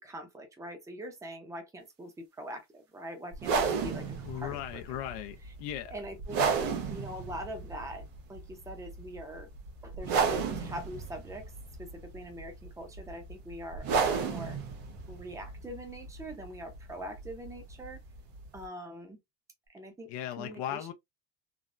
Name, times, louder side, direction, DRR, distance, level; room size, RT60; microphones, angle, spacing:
voice 1, 0.0-5.1 5.9-6.6 6.9-9.5 9.8-11.5 11.8-14.6 15.1-18.0 18.5-19.2 19.7-20.1 20.4-20.9, right 1 dB, 5° right, 0.6 m, -43 dB
sound 1, 3.3-18.7, right 5 dB, 85° right, 1.1 m, -34 dB
voice 2, 4.2-5.9 20.1-20.9, left 11 dB, 65° left, 0.6 m, -37 dB
3.4 x 2.0 x 2.4 m
cardioid pair, 150°, 44 cm